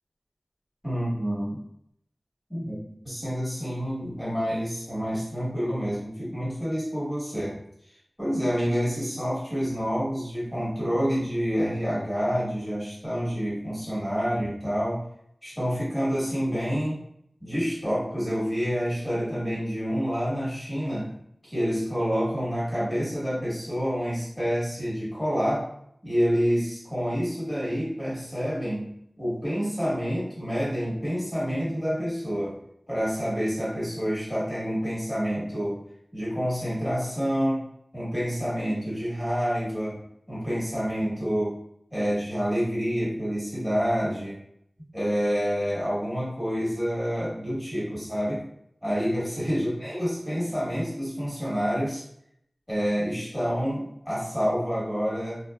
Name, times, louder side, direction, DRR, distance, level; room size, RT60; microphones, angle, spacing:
voice 1, 0.8-1.6 2.5-2.7 3.0-7.6 8.2-15.0 15.4-17.0 17.4-21.1 21.4-25.7 26.0-28.9 29.2-32.5 32.9-35.8 36.1-37.6 37.9-40.0 40.3-41.5 41.9-44.4 44.9-48.4 48.8-52.0 52.7-55.4, equal, ahead, -9 dB, 1.3 m, -28 dB
2.6 x 2.3 x 2.2 m, 0.73 s
wide cardioid pair, 50°, 0 cm